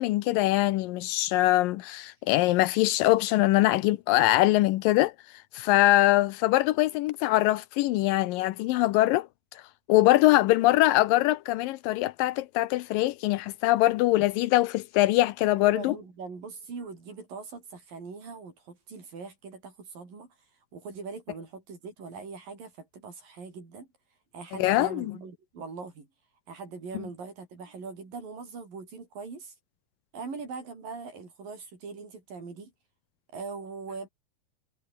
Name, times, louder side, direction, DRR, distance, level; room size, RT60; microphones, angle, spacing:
voice 1, 0.0-5.1 5.5-9.3 9.9-15.9 24.6-25.1, left 17 dB, 85° left, 2.4 m, -23 dB
voice 2, 15.6-20.3 20.7-23.9 24.3-26.1 26.5-29.5 30.1-32.7 33.3-34.1, right 4 dB, 80° right, 7.7 m, -41 dB
omnidirectional pair, 3.9 m